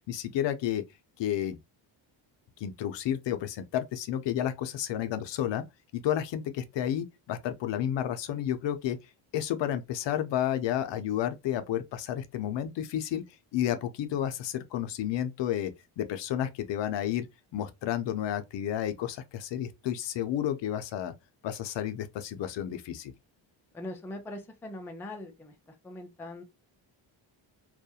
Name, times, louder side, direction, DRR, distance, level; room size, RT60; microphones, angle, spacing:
voice 1, 0.1-0.8 1.2-1.6 2.6-5.6 5.9-9.0 9.3-13.2 13.5-17.3 17.5-21.1 21.4-23.1, left 11 dB, 65° left, 0.5 m, -31 dB
voice 2, 23.7-25.5 25.8-26.4, left 1 dB, 5° left, 0.3 m, -41 dB
2.3 x 2.1 x 2.6 m
cardioid pair, 105°, 48 cm